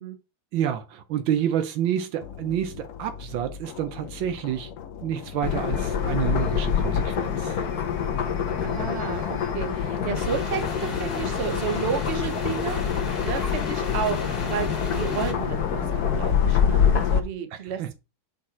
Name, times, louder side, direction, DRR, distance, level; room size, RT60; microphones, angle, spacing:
voice 1, 0.5-4.7 5.0-7.6 17.5-17.9, right 10 dB, 75° right, 1.5 m, -29 dB
sound 1, 2.2-7.9, left 8 dB, 75° left, 0.7 m, -41 dB
sound 2, 5.4-17.2, left 7 dB, 55° left, 1.3 m, -25 dB
voice 2, 8.6-17.9, right 7 dB, 40° right, 1.1 m, -32 dB
sound 3, 10.1-15.3, left 2 dB, 25° left, 2.2 m, -36 dB
7.0 x 5.2 x 4.3 m
omnidirectional pair, 2.3 m